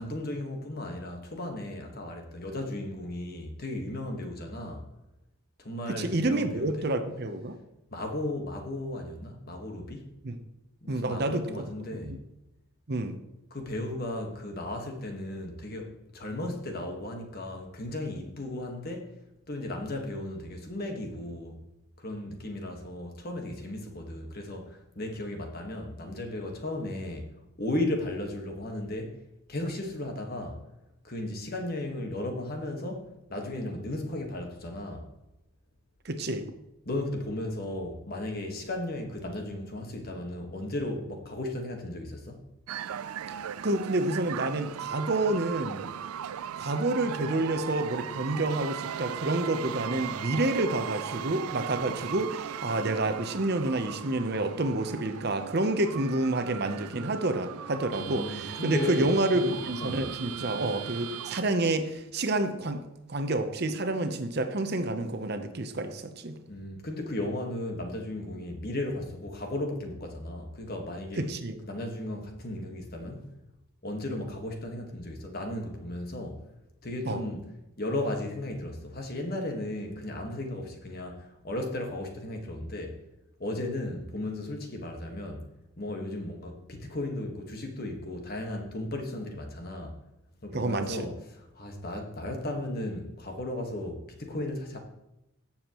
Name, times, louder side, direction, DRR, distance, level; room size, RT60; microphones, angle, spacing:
voice 1, 0.0-4.9 5.6-6.9 7.9-10.1 10.8-12.2 13.5-19.1 19.5-21.6 22.0-29.2 29.5-30.6 31.0-35.1 36.8-42.4 58.0-60.1 66.5-71.3 71.6-73.3 73.8-76.4 76.8-77.5 77.8-83.0 83.4-85.5 85.8-90.0 90.4-94.8, left 1 dB, 45° left, 1.5 m, -35 dB
voice 2, 5.9-7.5 10.2-10.4 10.9-11.7 11.9-12.2 12.9-13.2 36.0-36.4 43.5-45.9 46.6-62.8 63.1-66.4 71.2-71.6 77.0-77.2 90.5-91.1, right 2 dB, 50° right, 0.8 m, -29 dB
sound 1, 42.7-61.4, right 9 dB, 85° right, 0.4 m, -38 dB
16.5 x 7.2 x 3.0 m
head